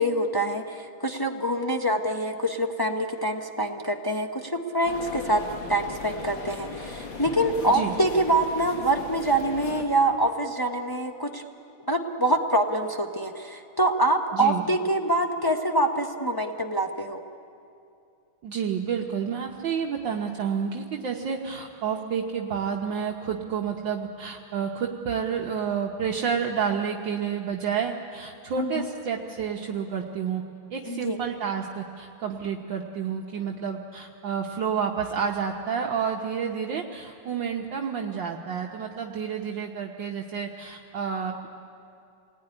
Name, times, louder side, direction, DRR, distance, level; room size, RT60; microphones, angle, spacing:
voice 1, 0.0-5.4 5.7-11.4 11.9-17.2 28.6-28.9 30.9-31.2, right 1 dB, 30° left, 2 dB, 0.4 m, -25 dB
sound 1, 4.8-9.8, left 4 dB, 60° left, 2.6 m, -38 dB
voice 2, 14.3-14.6 18.4-30.4 30.7-41.5, right 7 dB, 65° right, 1 dB, 1.7 m, -30 dB
27.0 x 19.5 x 9.9 m, 2.6 s
omnidirectional pair, 2.3 m